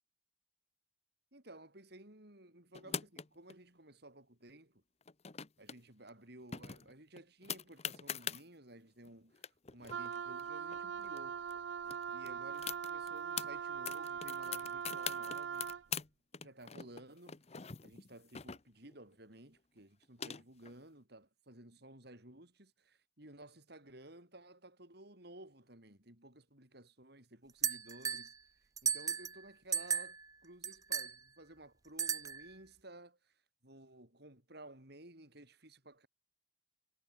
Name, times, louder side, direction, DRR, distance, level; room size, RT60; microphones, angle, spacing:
voice 1, 1.3-4.8 5.6-11.5 12.1-15.7 16.4-17.4 17.8-28.3 28.8-30.2 30.4-36.1, right 1 dB, 60° right, 6.1 m, -55 dB
sound 1, 2.7-3.5 5.0-5.8 6.1-6.2 6.5-8.4 9.1-9.2 9.3-11.2 11.5-11.6 11.9-13.5 13.9-16.1 16.3-18.9 19.8-20.7, left 8 dB, 35° left, 0.9 m, -43 dB
Wind instrument woodwind instrument, 9.9-15.9, right 7 dB, 80° right, 0.5 m, -41 dB
sound 2, 27.6-28.3 28.8-29.4 29.7-30.2 30.6-31.1 32.0-32.5, right 7 dB, 20° right, 0.5 m, -35 dB
head